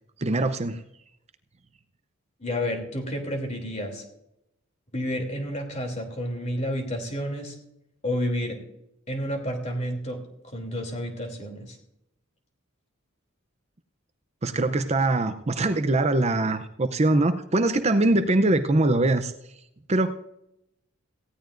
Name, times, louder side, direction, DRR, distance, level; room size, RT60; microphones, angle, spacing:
voice 1, 0.2-0.8 14.4-19.3 19.9-20.1, right 2 dB, 30° right, 9 dB, 0.6 m, -22 dB
voice 2, 2.4-4.0 4.9-7.5 8.0-8.6 9.1-10.2 10.5-11.8, equal, 35° left, 3 dB, 3.0 m, -30 dB
18.0 x 16.0 x 2.6 m, 0.82 s
head